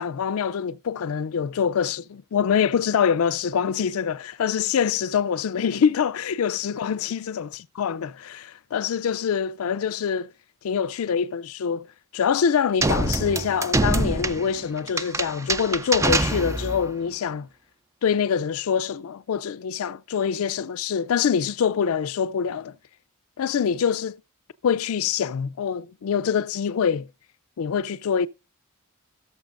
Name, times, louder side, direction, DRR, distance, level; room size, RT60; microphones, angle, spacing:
voice 1, 0.0-7.5 7.8-10.3 10.6-11.9 12.1-17.5 18.0-22.7 23.4-24.2 24.6-27.1 27.6-28.3, left 7 dB, 75° left, 0.4 m, -25 dB
sound 1, 12.8-16.9, right 2 dB, 15° right, 0.4 m, -25 dB
17.5 x 6.9 x 2.5 m
head